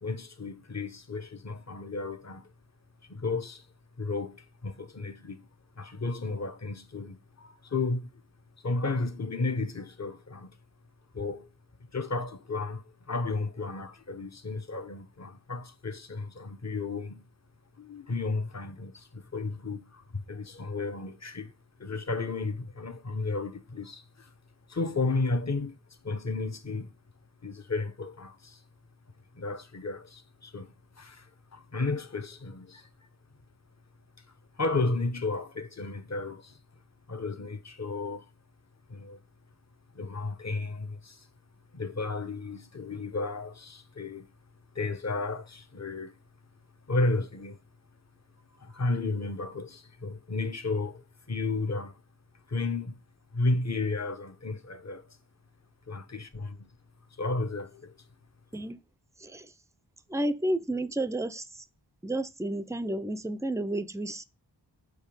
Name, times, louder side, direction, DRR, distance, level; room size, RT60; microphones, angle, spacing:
voice 1, 0.0-2.5 3.1-3.7 4.0-5.5 5.8-8.1 8.6-10.6 11.1-11.5 11.8-17.2 17.8-21.5 21.8-24.3 24.7-25.8 26.0-26.9 27.4-28.6 29.3-32.9 34.5-36.6 37.1-38.3 38.9-39.2 39.9-41.3 41.7-44.3 44.7-46.1 46.9-47.6 48.6-52.0 52.5-53.0 53.3-55.2 55.9-56.7 57.2-57.9, left 3 dB, 40° left, 0.9 m, -33 dB
voice 2, 60.1-61.5 62.0-64.2, right 1 dB, 5° right, 0.5 m, -31 dB
6.5 x 2.8 x 5.1 m
wide cardioid pair, 40°, 43 cm